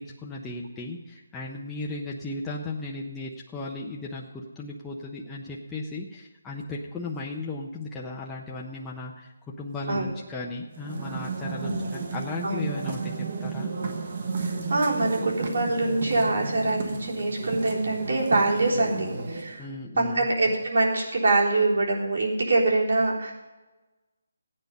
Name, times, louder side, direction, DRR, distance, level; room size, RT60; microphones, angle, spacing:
voice 1, 0.0-13.7 19.6-20.3, left 2 dB, 5° left, -4 dB, 0.6 m, -36 dB
sound 1, 10.7-19.6, right 4 dB, 35° right, 1.2 m, -33 dB
voice 2, 14.4-19.7 20.0-23.3, right 2 dB, 60° right, -3 dB, 3.6 m, -24 dB
15.5 x 9.1 x 5.3 m, 1.1 s
hypercardioid pair, 180°, 0 cm